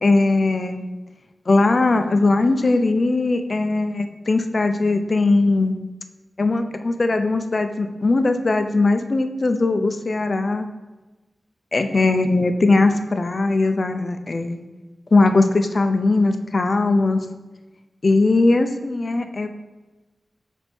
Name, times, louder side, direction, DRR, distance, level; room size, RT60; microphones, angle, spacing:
voice 1, 0.0-0.9 1.5-5.8 6.4-10.7 11.7-14.6 15.1-17.3 18.0-19.5, left 3 dB, 45° left, 8 dB, 0.5 m, -19 dB
6.0 x 4.5 x 4.2 m, 1.2 s
wide cardioid pair, 95°, 0 cm